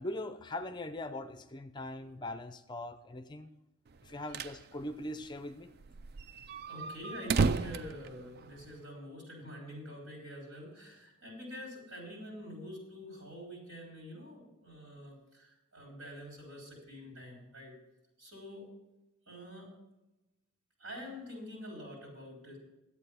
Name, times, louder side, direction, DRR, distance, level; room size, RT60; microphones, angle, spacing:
voice 1, 0.0-3.5 4.0-5.7, left 1 dB, 20° left, 10 dB, 0.5 m, -41 dB
sound 1, 4.0-4.6 4.9-5.0 5.2-5.3 5.8-8.8, right 4 dB, 50° right, 0.4 m, -33 dB
voice 2, 6.7-17.7 18.2-18.7 19.3-19.7 20.8-22.6, equal, 75° right, -1 dB, 4.6 m, -46 dB
11.0 x 8.3 x 5.5 m, 0.97 s
head